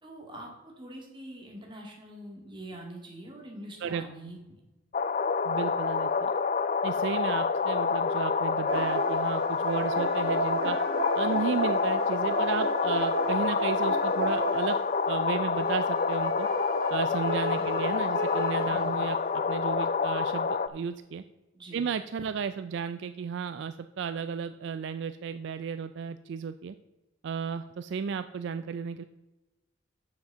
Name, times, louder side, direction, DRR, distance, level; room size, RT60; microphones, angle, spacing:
voice 1, 0.0-4.6 17.6-17.7 18.7-18.9 21.5-21.9 22.2-22.3, right 1 dB, 25° right, 0 dB, 2.0 m, -44 dB
sound 1, 4.9-20.7, left 5 dB, 35° left, 0.4 m, -28 dB
voice 2, 5.4-6.3 6.8-10.8 11.1-14.8 15.1-16.5 16.9-19.2 19.5-21.2 21.7-26.8 27.2-29.0, right 6 dB, 60° right, 11 dB, 0.3 m, -33 dB
sound 2, 8.7-15.0 15.5-19.0, right 4 dB, 80° right, 1.4 m, -34 dB
7.3 x 6.4 x 6.7 m, 1.1 s
head